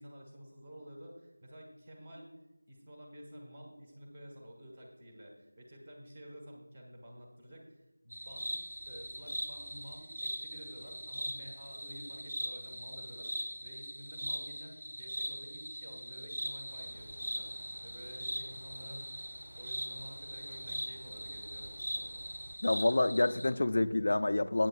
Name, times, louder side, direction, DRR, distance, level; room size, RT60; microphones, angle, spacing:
voice 1, 0.0-2.3 2.7-8.5 8.8-21.7, equal, 20° right, -1 dB, 1.6 m, -51 dB
sound 1, 8.1-23.5, equal, 70° right, 4.0 m, -41 dB
sound 2, 16.7-22.6, right 1 dB, 40° right, 1.3 m, -53 dB
voice 2, 22.6-24.7, left 2 dB, 40° left, 12 dB, 0.4 m, -28 dB
15.0 x 9.0 x 2.5 m, 1.0 s
figure-of-eight pair, 170°, 0 cm